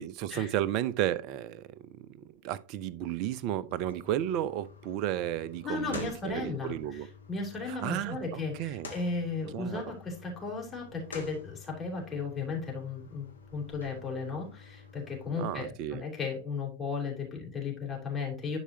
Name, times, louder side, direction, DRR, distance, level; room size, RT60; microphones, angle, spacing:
voice 1, 0.0-7.1 7.7-8.9 9.5-9.9 15.4-16.0, right 12 dB, 40° right, 0.6 m, -33 dB
sound 1, 3.7-15.7, left 4 dB, 75° left, 1.7 m, -49 dB
voice 2, 5.6-18.6, left 4 dB, 15° left, 3.7 m, -35 dB
11.0 x 4.8 x 2.8 m
figure-of-eight pair, 90°, 0 cm